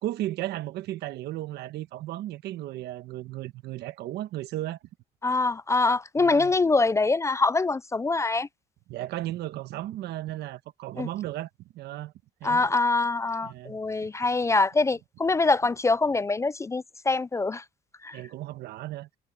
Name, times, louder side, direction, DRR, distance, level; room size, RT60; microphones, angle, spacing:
voice 1, 0.0-4.8 6.2-6.5 8.9-11.5 11.7-12.1 12.4-12.7 13.4-13.8 18.1-19.1, right 14 dB, 75° right, 1.3 m, -35 dB
voice 2, 5.2-8.5 11.0-11.1 12.4-17.6 18.0-18.2, left 3 dB, 15° left, 0.4 m, -24 dB
cardioid pair, 110°, 17 cm